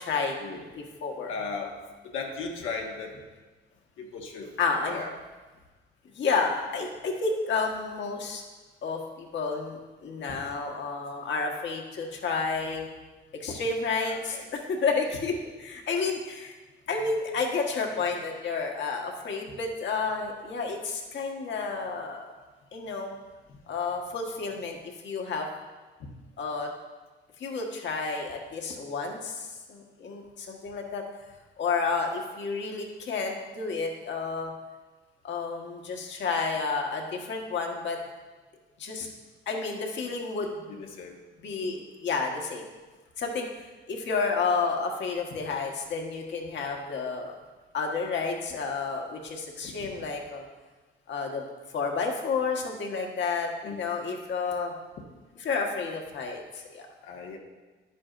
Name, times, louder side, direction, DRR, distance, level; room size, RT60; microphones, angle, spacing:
voice 1, 0.0-0.3 0.7-1.3 4.6-5.0 6.1-8.4 8.8-12.9 13.4-16.5 16.9-22.3 22.7-23.2 23.7-24.8 25.0-25.5 26.4-26.7 27.4-31.0 31.6-34.5 35.2-38.0 38.8-39.1 39.5-40.5 41.4-42.7 43.2-43.5 43.9-47.4 47.7-50.5 51.1-51.4 51.7-54.7 55.4-56.9, left 4 dB, 65° left, 1 dB, 1.4 m, -30 dB
voice 2, 1.3-1.7 2.0-3.2 4.0-4.5 4.9-5.1 10.3-10.4 14.1-14.4 40.7-41.2 41.6-41.8 49.8-49.9 53.6-53.8 57.0-57.4, left 4 dB, 85° left, 0 dB, 1.4 m, -37 dB
10.5 x 8.3 x 2.5 m, 1.3 s
cardioid pair, 90°, 20 cm